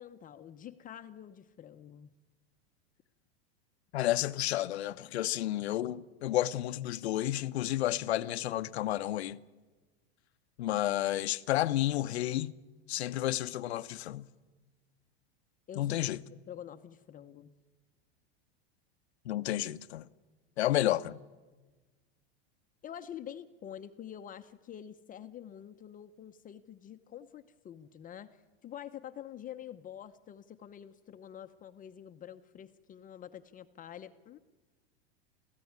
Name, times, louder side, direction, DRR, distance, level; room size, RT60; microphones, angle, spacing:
voice 1, 0.0-2.1 15.7-16.0 16.5-17.5 22.8-28.4 28.6-34.4, left 10 dB, 25° left, 0.9 m, -47 dB
voice 2, 3.9-9.4 10.6-12.6 12.9-14.3 15.8-16.2 19.2-20.1 20.6-21.2, left 14 dB, 85° left, 0.9 m, -31 dB
28.0 x 15.0 x 9.5 m
supercardioid pair, 125°, 32 cm